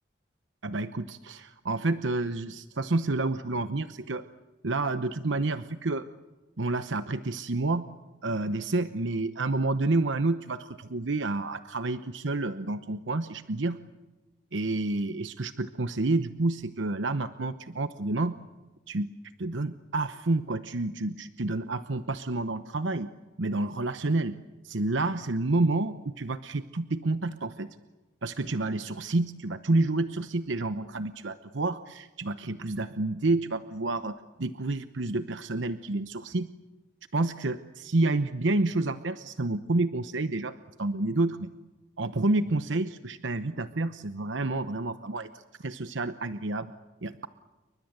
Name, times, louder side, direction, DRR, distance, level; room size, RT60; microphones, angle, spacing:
voice 1, 0.6-4.2 4.6-6.1 6.6-7.9 8.2-13.8 14.5-18.4 18.9-19.1 19.4-23.1 23.4-24.4 24.6-27.8 28.2-36.5 37.1-41.5 42.0-46.7 47.0-47.3, right 2 dB, 75° right, 11 dB, 0.9 m, -29 dB
30.0 x 24.0 x 8.0 m, 1.2 s
head